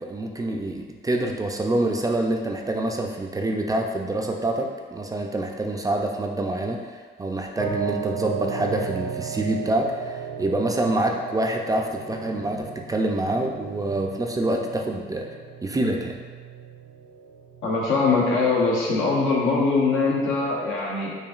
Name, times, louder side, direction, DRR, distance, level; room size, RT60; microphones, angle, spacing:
voice 1, 0.1-15.3 15.6-16.2, right 1 dB, 20° right, 2 dB, 0.3 m, -26 dB
sound 1, 7.6-20.6, right 6 dB, 70° right, 0.6 m, -36 dB
voice 2, 17.6-21.2, left 3 dB, 80° left, -3 dB, 0.9 m, -22 dB
4.8 x 2.6 x 2.4 m, 1.5 s
cardioid pair, 90°, 20 cm